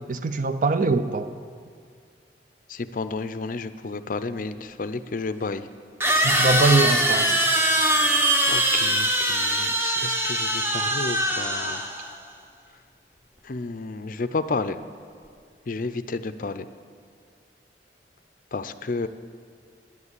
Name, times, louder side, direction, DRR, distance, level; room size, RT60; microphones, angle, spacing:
voice 1, 0.1-1.3 6.2-7.4, right 3 dB, 45° right, 10 dB, 0.5 m, -22 dB
voice 2, 2.7-5.6 8.4-11.8 13.4-14.8 15.7-16.6 18.5-19.1, left 3 dB, 50° left, 12 dB, 0.5 m, -31 dB
sound 1, 4.4-4.5 6.0-12.1, right 1 dB, 15° right, 0.9 m, -22 dB
10.5 x 9.7 x 8.2 m, 2.2 s
head